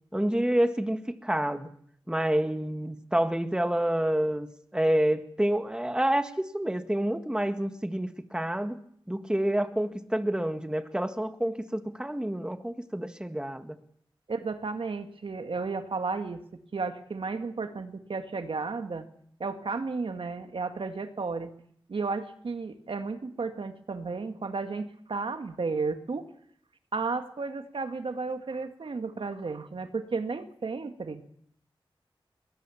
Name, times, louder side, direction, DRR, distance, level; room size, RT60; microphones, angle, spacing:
voice 1, 0.1-1.7 2.1-4.5 4.7-8.8 9.1-13.8, right 1 dB, 10° right, 8 dB, 1.7 m, -28 dB
voice 2, 14.3-19.1 19.4-21.5 21.9-26.3 26.9-31.3, right 4 dB, 75° right, 7 dB, 1.9 m, -33 dB
22.0 x 20.5 x 7.2 m, 0.66 s
wide cardioid pair, 70°, 9 cm